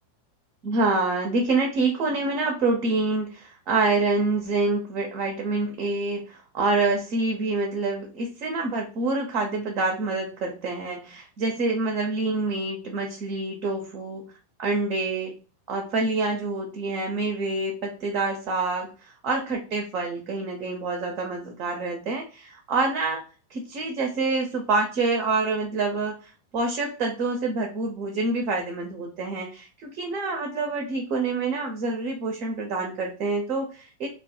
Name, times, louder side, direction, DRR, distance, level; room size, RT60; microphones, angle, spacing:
voice 1, 0.6-14.3 14.6-15.3 15.7-23.2 23.5-34.1, right 3 dB, 40° right, 3 dB, 0.5 m, -27 dB
2.2 x 2.0 x 2.7 m, 0.35 s
figure-of-eight pair, 90°, 0 cm